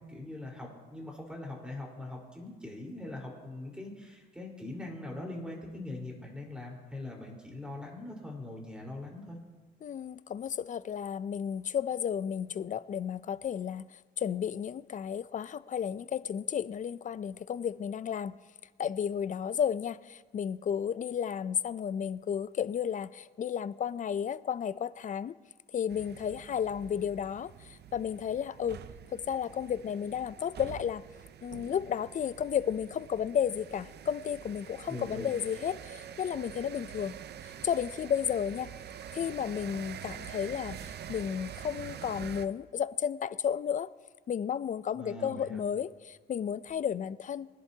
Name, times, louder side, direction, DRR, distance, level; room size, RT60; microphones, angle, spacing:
voice 1, 0.0-9.4 34.9-35.3 44.9-45.6, left 2 dB, 5° right, -2 dB, 4.2 m, -42 dB
voice 2, 9.8-18.4 18.8-25.3 25.7-28.8 29.1-31.0 31.4-37.2 37.4-38.7 39.1-43.9 44.3-47.5, left 8 dB, 40° left, 17 dB, 0.4 m, -33 dB
sound 1, 25.9-42.5, right 9 dB, 55° right, 0.6 m, -46 dB
23.0 x 11.0 x 2.8 m, 1.4 s
cardioid pair, 90°, 20 cm